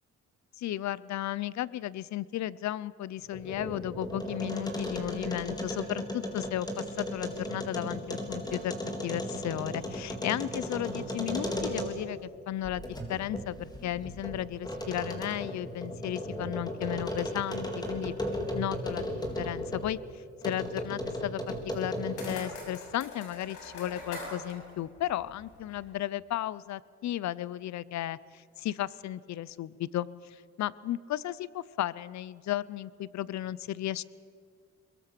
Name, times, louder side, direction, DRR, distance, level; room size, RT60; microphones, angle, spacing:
voice 1, 0.6-18.1 18.5-19.1 19.4-34.0, left 13 dB, 65° left, 20 dB, 0.7 m, -34 dB
sound 1, 3.2-12.2 12.6-19.9 20.4-22.5, equal, 15° left, 3.7 m, -36 dB
sound 2, 21.7-25.9, left 2 dB, 85° left, 6.2 m, -44 dB
23.0 x 22.0 x 6.8 m, 2.1 s
cardioid pair, 90°, 30 cm